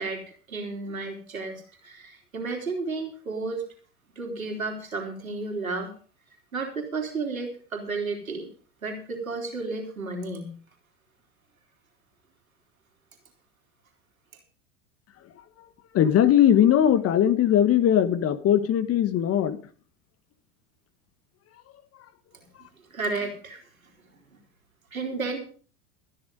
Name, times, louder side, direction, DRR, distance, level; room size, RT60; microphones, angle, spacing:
voice 1, 0.0-3.7 4.1-5.9 6.5-8.5 8.8-10.5 22.3-22.5 22.9-23.6 24.9-25.4, right 3 dB, 85° right, 3 dB, 3.7 m, -32 dB
voice 2, 15.9-19.6, left 10 dB, 35° left, 12 dB, 1.5 m, -20 dB
13.5 x 10.0 x 5.4 m, 0.41 s
figure-of-eight pair, 85°, 40 cm